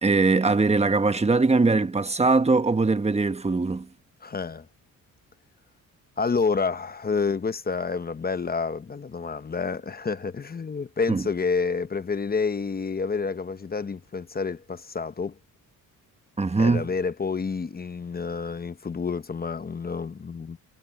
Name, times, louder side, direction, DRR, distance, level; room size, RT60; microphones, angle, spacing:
voice 1, 0.0-3.9 11.1-11.2 16.4-16.9, right 3 dB, 20° right, 1.3 m, -21 dB
voice 2, 4.2-4.7 6.2-15.3 16.6-20.6, left 5 dB, 25° left, 0.9 m, -29 dB
cardioid pair, 95°, 34 cm